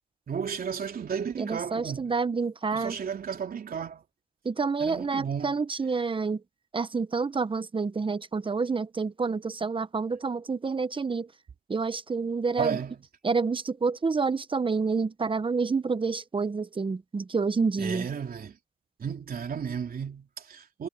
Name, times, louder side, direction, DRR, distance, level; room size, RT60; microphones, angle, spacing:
voice 1, 0.3-2.1 2.7-4.0 4.8-5.6 12.6-13.0 17.8-18.6 19.0-20.9, right 7 dB, 50° right, 3.6 m, -33 dB
voice 2, 1.4-3.0 4.4-6.4 6.7-11.3 11.7-12.8 13.2-18.1, right 4 dB, 25° right, 1.1 m, -28 dB
cardioid pair, 90°, 20 cm